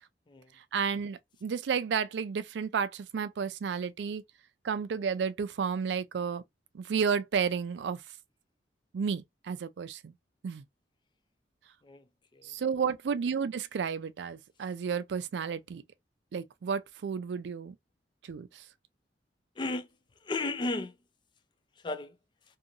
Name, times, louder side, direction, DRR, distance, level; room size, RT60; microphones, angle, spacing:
voice 1, 0.7-4.2 4.6-6.4 6.7-8.0 8.9-10.1 10.4-10.6 12.4-15.8 16.3-17.8 18.2-18.6, right 6 dB, 70° right, 0.4 m, -32 dB
voice 2, 19.6-19.9 20.2-20.9 21.8-22.2, left 2 dB, 25° left, 0.4 m, -34 dB
2.7 x 2.5 x 2.6 m
head